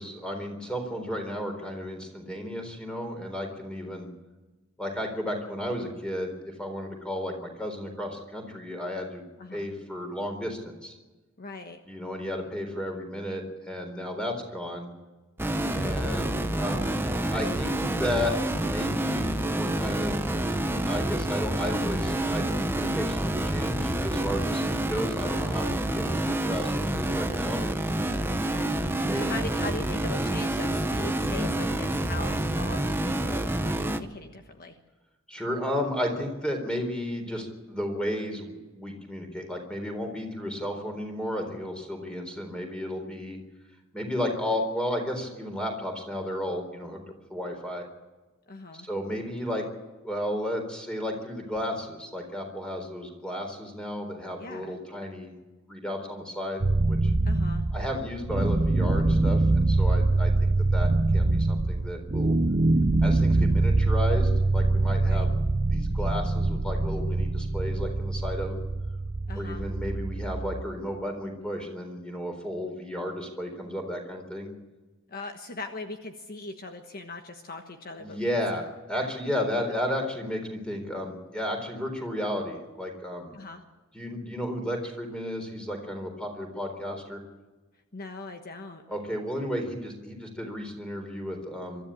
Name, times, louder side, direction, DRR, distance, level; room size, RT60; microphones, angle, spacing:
voice 1, 0.0-4.1 4.8-9.2 9.5-10.9 11.9-14.9 15.7-17.7 18.0-20.4 20.9-25.7 25.9-27.6 29.0-29.3 31.2-31.4 35.3-43.4 43.9-47.0 47.3-47.8 48.7-49.7 50.0-55.3 55.7-56.6 56.9-57.1 57.7-62.3 63.0-65.3 65.7-68.7 69.3-74.5 78.0-83.3 83.9-87.2 88.9-91.8, left 1 dB, 5° left, 4 dB, 4.0 m, -33 dB
voice 2, 11.4-11.8 15.6-16.1 28.3-34.8 48.5-48.9 54.4-54.7 57.2-57.6 65.0-65.3 69.3-69.6 75.1-78.3 78.5-78.6 83.3-83.6 87.9-88.8, left 2 dB, 45° left, 5 dB, 1.3 m, -40 dB
sound 1, 15.4-34.0, right 1 dB, 10° right, 0.9 m, -28 dB
sound 2, 56.6-70.6, right 2 dB, 35° right, 0.6 m, -24 dB
23.5 x 13.5 x 8.6 m, 1.2 s
head